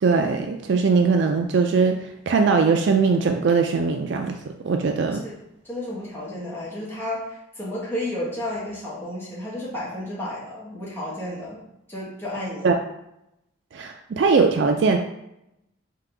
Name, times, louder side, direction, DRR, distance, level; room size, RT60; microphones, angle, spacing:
voice 1, 0.0-2.0 2.3-4.4 4.6-5.2 12.6-12.7 13.7-15.0, right 4 dB, 60° right, 5 dB, 0.3 m, -20 dB
voice 2, 5.6-11.6 11.9-12.7, left 1 dB, 10° left, -7 dB, 1.2 m, -32 dB
3.8 x 3.6 x 3.4 m, 0.83 s
head